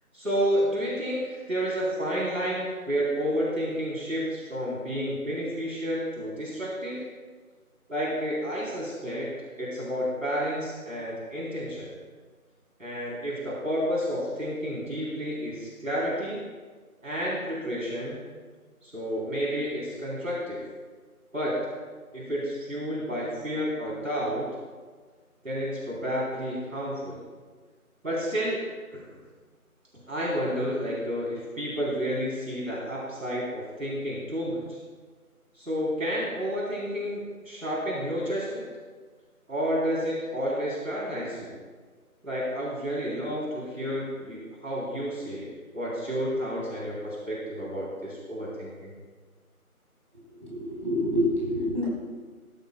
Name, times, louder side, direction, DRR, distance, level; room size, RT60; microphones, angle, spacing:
voice 1, 0.1-7.0 7.9-9.3 9.6-11.9 12.8-16.4 17.0-18.2 18.8-20.7 21.3-21.6 22.1-24.5 25.4-27.2 28.0-28.6 28.9-29.2 29.9-34.8 35.5-38.7 39.5-41.6 42.2-48.9, equal, 60° right, -5 dB, 3.8 m, -30 dB
voice 2, 50.4-51.8, equal, 35° right, -7 dB, 4.4 m, -27 dB
18.5 x 13.0 x 2.3 m, 1.4 s
figure-of-eight pair, 170°, 45 cm